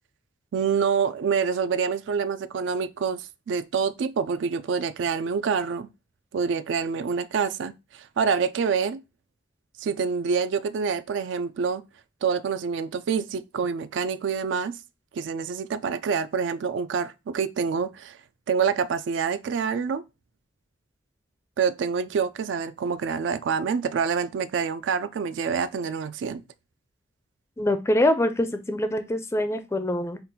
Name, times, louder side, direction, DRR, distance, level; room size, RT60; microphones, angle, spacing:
voice 1, 0.5-5.9 6.3-9.0 9.8-11.8 12.2-14.8 15.1-18.2 18.5-20.0 21.6-26.4, right 6 dB, 70° right, 0.3 m, -26 dB
voice 2, 27.6-30.2, left 1 dB, 15° left, 0.4 m, -24 dB
3.8 x 2.4 x 4.0 m
head